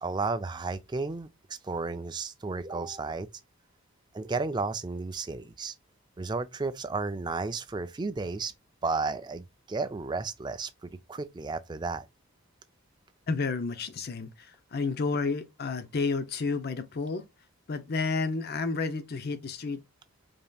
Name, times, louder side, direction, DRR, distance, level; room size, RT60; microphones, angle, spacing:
voice 1, 0.0-3.3 4.1-5.7 6.2-8.5 8.8-12.0, right 3 dB, 20° right, 0.3 m, -33 dB
voice 2, 13.3-17.2 17.7-19.8, left 4 dB, 45° left, 0.5 m, -31 dB
5.1 x 2.9 x 2.3 m
head